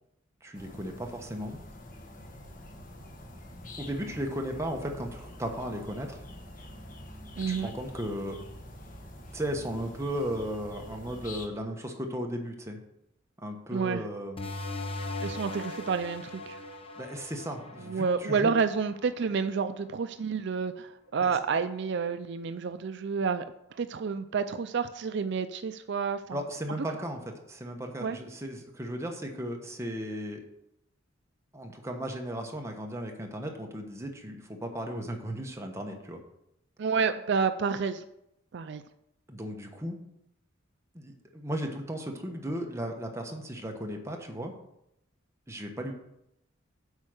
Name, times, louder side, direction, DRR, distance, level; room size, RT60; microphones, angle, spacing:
voice 1, 0.4-1.6 3.8-6.2 7.5-8.4 9.3-12.8 13.4-14.5 17.0-18.5 21.3-21.4 26.3-27.2 27.5-30.4 31.5-36.2 39.3-40.0 40.9-44.5 45.5-45.9, equal, 15° right, 2 dB, 1.1 m, -35 dB
sound 1, 0.5-11.5, left 1 dB, 45° left, 1.3 m, -46 dB
voice 2, 7.4-7.7 13.7-14.0 15.2-16.6 17.8-23.5 23.7-26.4 28.0-28.2 36.8-38.0 38.5-38.8, right 5 dB, 60° right, 10 dB, 0.4 m, -29 dB
sound 2, 14.4-19.6, left 2 dB, 30° left, 1.0 m, -39 dB
8.2 x 5.4 x 6.5 m, 0.81 s
head